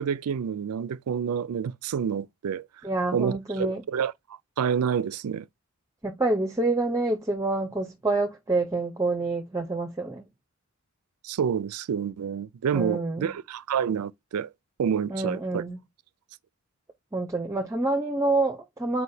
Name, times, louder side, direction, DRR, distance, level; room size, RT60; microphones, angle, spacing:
voice 1, 0.0-2.7 3.1-4.1 4.6-5.5 11.2-14.5 14.8-15.6, right 7 dB, 90° right, 0.4 m, -28 dB
voice 2, 2.8-3.8 6.0-10.2 12.7-13.3 15.1-15.8 17.1-19.0, right 2 dB, 15° right, 0.7 m, -27 dB
8.2 x 4.7 x 2.7 m
head